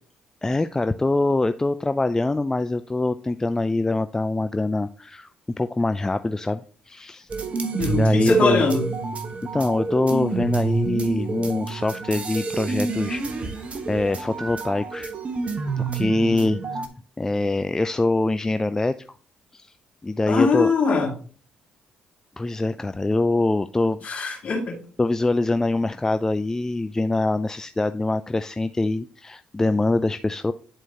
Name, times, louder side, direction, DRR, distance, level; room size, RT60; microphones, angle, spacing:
voice 1, 0.4-5.3 5.6-7.3 7.8-8.6 9.5-15.1 15.8-16.9 17.2-18.9 19.5-19.7 20.0-20.7 22.4-24.0 25.0-30.5, left 2 dB, 20° left, 10 dB, 0.4 m, -24 dB
sound 1, 7.3-16.9, right 4 dB, 45° right, 1.2 m, -28 dB
voice 2, 7.8-8.9 20.3-21.1 24.0-24.8, left 3 dB, 50° left, 0 dB, 2.4 m, -21 dB
10.5 x 4.5 x 2.8 m, 0.41 s
hypercardioid pair, 50°, 3 cm